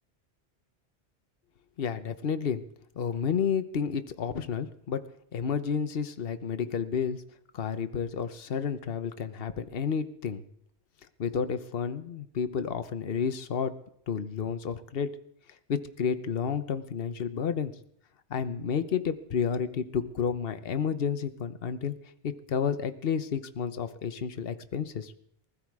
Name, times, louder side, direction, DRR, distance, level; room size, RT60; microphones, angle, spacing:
voice 1, 1.8-2.6 2.9-5.0 5.3-7.2 7.5-10.4 11.2-13.7 14.1-15.1 15.7-17.7 18.3-21.9 22.2-25.1, left 7 dB, 60° left, 10 dB, 1.2 m, -31 dB
20.0 x 13.5 x 4.8 m, 0.69 s
omnidirectional pair, 1.1 m